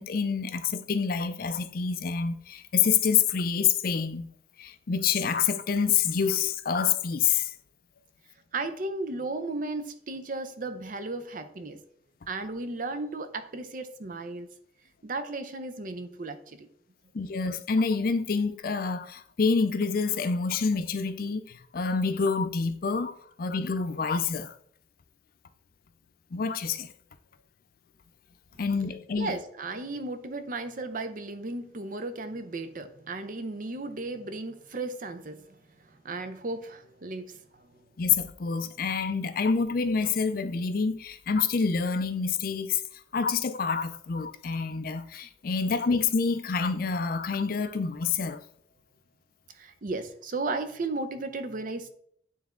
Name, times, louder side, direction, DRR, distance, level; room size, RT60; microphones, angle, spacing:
voice 1, 0.0-4.3 4.6-7.5 17.1-24.5 26.3-26.9 28.6-29.3 38.0-42.8 43.1-48.4, left 5 dB, 50° left, 0.4 m, -27 dB
voice 2, 8.5-11.8 12.3-14.5 15.0-16.7 29.2-35.6 35.9-37.4 49.5-51.9, right 2 dB, 45° right, 0.6 m, -35 dB
9.3 x 3.4 x 3.7 m
head